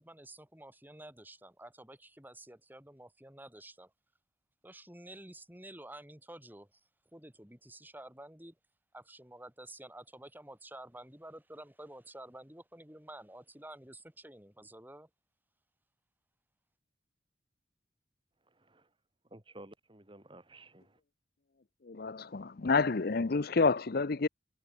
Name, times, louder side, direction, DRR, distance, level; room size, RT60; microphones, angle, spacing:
voice 1, 0.0-3.9 4.6-6.8 7.1-8.6 8.9-15.1, right 1 dB, 10° right, 4.5 m, -50 dB
voice 2, 18.5-18.9 19.3-21.0, right 1 dB, 25° right, 2.6 m, -54 dB
voice 3, 21.8-24.3, left 4 dB, 55° left, 0.7 m, -29 dB
head